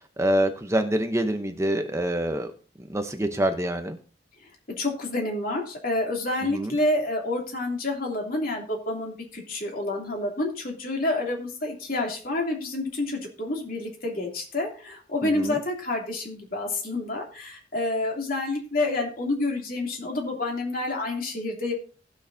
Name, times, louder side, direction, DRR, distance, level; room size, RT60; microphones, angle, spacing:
voice 1, 0.2-2.5 2.9-4.0 6.5-6.8 15.2-15.6, right 1 dB, 15° right, 6 dB, 0.8 m, -26 dB
voice 2, 4.8-21.7, left 2 dB, 55° left, 0 dB, 2.9 m, -28 dB
19.0 x 6.4 x 2.7 m, 0.38 s
head